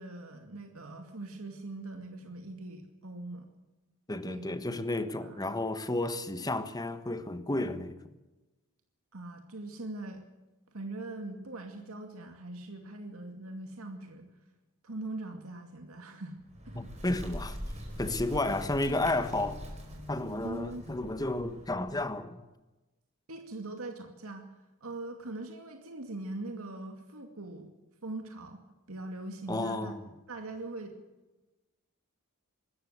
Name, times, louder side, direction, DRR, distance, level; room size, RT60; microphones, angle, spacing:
voice 1, 0.0-3.5 4.3-4.5 5.2-5.4 9.1-10.2 10.7-14.3 14.8-16.8 20.4-20.9 23.3-24.5 24.8-27.7 28.0-28.6 28.9-29.9 30.3-31.0, right 2 dB, 80° right, 2.4 m, -41 dB
voice 2, 4.1-8.0 16.7-17.6 18.0-19.6 20.1-22.4 29.5-30.0, left 2 dB, 20° left, 1.3 m, -32 dB
Bird, 16.4-22.1, equal, 30° right, 5.0 m, -42 dB
24.5 x 13.5 x 8.1 m
head